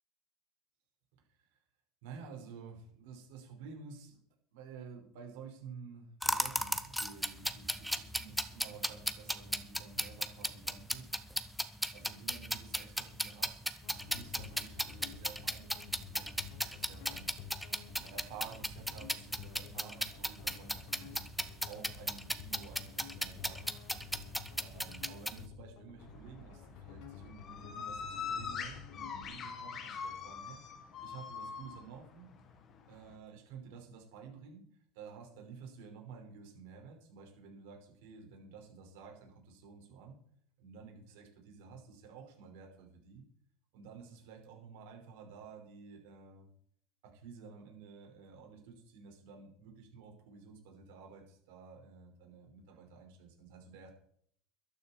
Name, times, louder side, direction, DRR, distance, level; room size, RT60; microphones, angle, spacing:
voice 1, 1.1-1.6 2.0-4.2 4.5-11.1 11.9-13.6 14.0-21.3 21.7-23.7 24.6-30.6 31.0-32.3 32.9-34.7 34.9-40.2 40.6-43.2 43.7-46.5 47.0-53.9, right 5 dB, 65° right, 2 dB, 5.4 m, -52 dB
sound 1, 6.2-25.4, equal, ahead, 0.8 m, -36 dB
sound 2, 13.8-29.3, left 6 dB, 55° left, 3.3 m, -52 dB
sound 3, 26.0-33.1, left 6 dB, 25° left, 1.6 m, -43 dB
14.0 x 12.5 x 4.6 m, 0.65 s
supercardioid pair, 160°, 0 cm